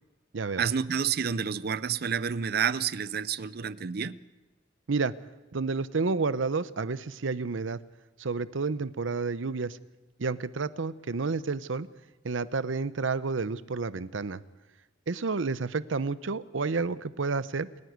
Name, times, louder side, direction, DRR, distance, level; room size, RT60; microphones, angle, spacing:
voice 1, 0.6-4.2, right 7 dB, 55° right, 17 dB, 0.6 m, -29 dB
voice 2, 5.5-7.8 8.2-9.8 10.2-11.9 12.2-14.4 15.1-17.7, right 4 dB, 90° right, 16 dB, 0.7 m, -30 dB
28.5 x 9.6 x 9.4 m, 1.1 s
head